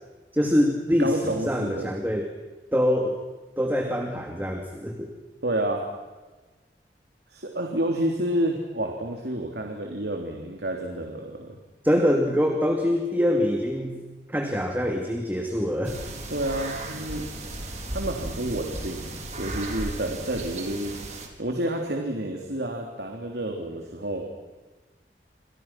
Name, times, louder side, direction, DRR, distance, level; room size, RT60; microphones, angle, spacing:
voice 1, 0.3-2.3 2.7-3.2 3.6-5.1 11.8-14.0 14.3-16.0, equal, 10° right, 3 dB, 2.6 m, -24 dB
voice 2, 1.0-1.9 5.4-5.8 7.3-11.6 16.3-17.3 17.9-21.0 21.4-24.3, right 1 dB, 70° right, 2 dB, 3.4 m, -29 dB
sound 1, 15.8-21.3, right 2 dB, 40° right, 4.5 m, -35 dB
28.5 x 27.0 x 6.1 m, 1.2 s
head